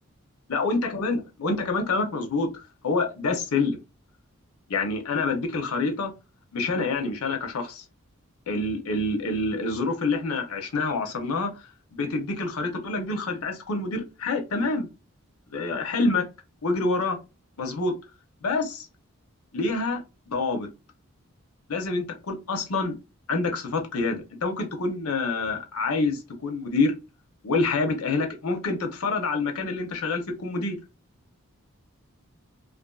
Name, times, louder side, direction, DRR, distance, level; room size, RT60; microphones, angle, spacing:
voice 1, 0.5-3.8 4.7-6.1 6.5-7.8 8.5-11.5 11.9-14.9 15.5-16.2 16.6-17.2 17.6-17.9 18.4-18.9 19.5-20.0 20.3-20.7 21.7-22.9 23.3-26.9 27.4-30.8, left 3 dB, 90° left, 0.7 m, -27 dB
2.5 x 2.5 x 2.3 m
head